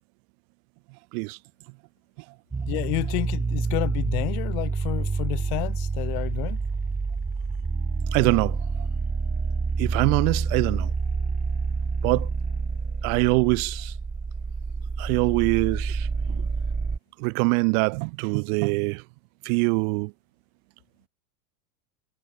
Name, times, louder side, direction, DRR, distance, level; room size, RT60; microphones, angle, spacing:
sound 1, 2.5-17.0, right 4 dB, 15° right, 6.5 m, -28 dB
voice 1, 2.7-6.6, left 31 dB, 65° left, 4.2 m, -30 dB
voice 2, 8.1-8.6 9.8-10.9 12.0-12.3 13.0-13.9 15.0-16.5 17.2-19.0 19.4-20.1, right 37 dB, 60° right, 1.3 m, -24 dB
hypercardioid pair, 90°, 49 cm